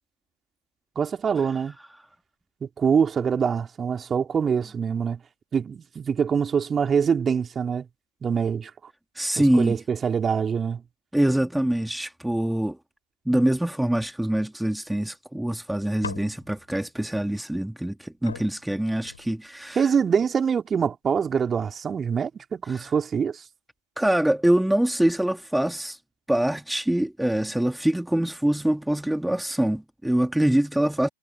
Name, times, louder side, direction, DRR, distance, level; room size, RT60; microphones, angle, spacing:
voice 1, 0.9-1.7 2.8-5.2 5.5-7.8 8.2-8.7 9.4-10.8 19.7-23.4, right 6 dB, 20° right, 3.2 m, -24 dB
voice 2, 9.1-9.8 11.1-12.8 13.3-19.9 22.7-22.9 24.0-26.0 26.3-31.1, right 1 dB, ahead, 2.5 m, -24 dB
sound 1, 16.0-16.8 17.9-18.0 18.3-19.7 20.5-20.9, left 6 dB, 70° left, 3.9 m, -41 dB
figure-of-eight pair, 100°, 0 cm